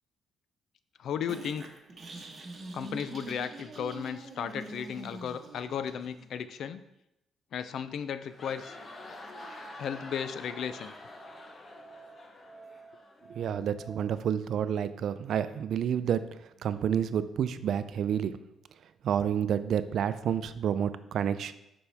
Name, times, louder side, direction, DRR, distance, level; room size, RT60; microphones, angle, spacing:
voice 1, 1.0-1.7 2.7-6.8 7.5-8.8 9.8-10.9, left 8 dB, 70° left, 13 dB, 0.4 m, -35 dB
sound 1, 1.3-6.3, right 2 dB, 40° right, 1.1 m, -44 dB
sound 2, 8.1-13.7, left 2 dB, 40° left, 0.9 m, -47 dB
Musical instrument, 8.8-14.0, right 4 dB, 25° left, 1.4 m, -54 dB
voice 2, 13.3-16.3 16.6-18.4 19.0-21.5, right 8 dB, 65° right, 13 dB, 0.4 m, -29 dB
7.0 x 5.3 x 3.4 m, 0.84 s
cardioid pair, 90°, 0 cm